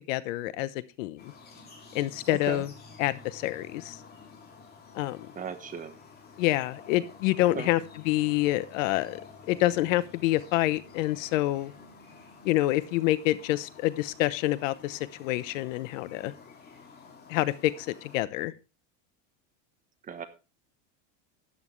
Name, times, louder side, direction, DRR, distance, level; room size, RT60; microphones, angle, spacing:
voice 1, 0.1-0.7 1.0-1.3 1.9-2.7 3.0-4.0 4.9-5.3 6.4-9.2 9.5-11.7 12.4-16.3 17.3-18.5, left 16 dB, 80° left, 16 dB, 1.0 m, -27 dB
sound 1, 1.2-18.2, left 5 dB, 25° left, 2.8 m, -50 dB
voice 2, 2.3-2.6 5.4-6.0 7.4-7.7 20.1-20.3, right 7 dB, 20° right, 9 dB, 1.1 m, -37 dB
13.0 x 9.7 x 3.2 m, 0.30 s
supercardioid pair, 155°, 38 cm